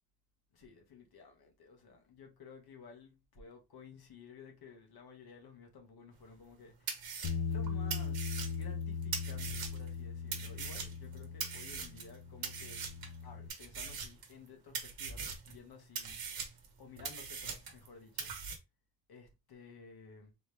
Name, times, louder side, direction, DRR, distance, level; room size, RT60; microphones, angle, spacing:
voice 1, 0.5-12.8 13.2-16.2 16.8-18.3 19.1-20.3, left 5 dB, 55° left, 1.4 m, -55 dB
sound 1, 6.4-6.5 6.9-10.0 10.3-12.2 12.4-13.2 13.5-14.5 14.7-15.6 16.0-17.9 18.2-18.6, right 6 dB, 55° right, 1.2 m, -41 dB
Bass guitar, 7.2-13.5, left 5 dB, 90° left, 0.8 m, -39 dB
3.8 x 3.2 x 3.3 m
wide cardioid pair, 160°, 44 cm